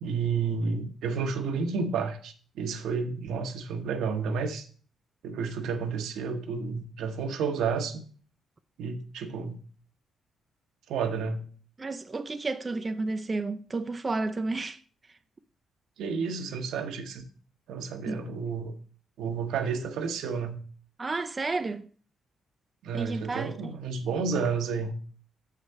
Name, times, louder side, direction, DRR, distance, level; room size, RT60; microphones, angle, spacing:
voice 1, 0.0-4.7 5.2-8.0 8.8-9.6 10.9-11.4 16.0-17.2 17.7-18.7 19.2-20.6 22.8-24.9, right 5 dB, 80° right, 1.0 m, -31 dB
voice 2, 11.8-14.8 18.1-18.2 21.0-21.9 22.9-23.7, right 3 dB, 30° right, 0.5 m, -31 dB
6.7 x 4.8 x 6.5 m
cardioid pair, 75°, 0 cm